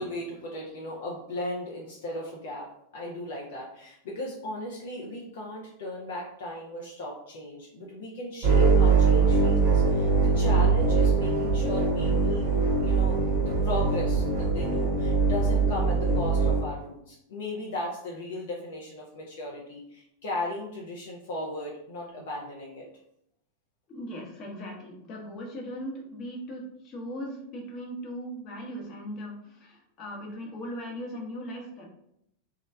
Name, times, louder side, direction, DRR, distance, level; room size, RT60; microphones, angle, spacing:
voice 1, 0.0-12.5 12.8-22.9, left 1 dB, 55° left, -2 dB, 0.6 m, -36 dB
sound 1, 8.4-16.6, right 4 dB, 40° right, 1.0 m, -22 dB
voice 2, 23.9-31.8, equal, 35° left, 0 dB, 1.0 m, -38 dB
3.0 x 2.3 x 3.4 m, 0.76 s
figure-of-eight pair, 90°, 0 cm